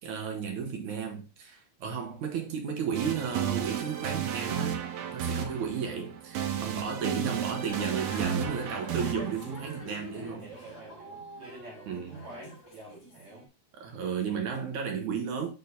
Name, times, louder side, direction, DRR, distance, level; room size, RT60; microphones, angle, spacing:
voice 1, 0.0-4.8 5.1-10.4 11.9-12.1 13.8-15.5, right 6 dB, 65° right, 2.1 m, -33 dB
sound 1, 2.9-10.9, right 9 dB, 85° right, 2.9 m, -33 dB
sound 2, 7.7-13.5, left 1 dB, 30° left, 4.0 m, -46 dB
voice 2, 10.1-13.5, right 2 dB, 50° right, 3.0 m, -48 dB
6.9 x 6.1 x 2.7 m
omnidirectional pair, 4.5 m